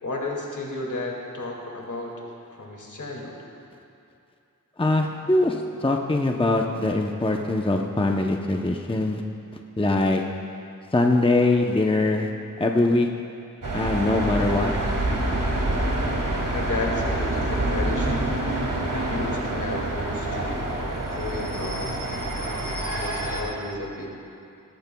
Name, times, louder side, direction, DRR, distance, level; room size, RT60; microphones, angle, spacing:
voice 1, 0.0-3.4 16.5-18.3 18.8-20.6 21.1-21.9 22.3-24.1, left 2 dB, 65° left, -2 dB, 2.2 m, -33 dB
voice 2, 4.8-9.2 9.8-10.2 10.9-12.3 12.6-13.1 13.7-14.7, left 2 dB, 15° left, 2 dB, 0.7 m, -22 dB
sound 1, 13.6-23.4, right 1 dB, 75° right, 1.8 m, -27 dB
18.0 x 14.0 x 2.3 m, 2.5 s
wide cardioid pair, 45°, 32 cm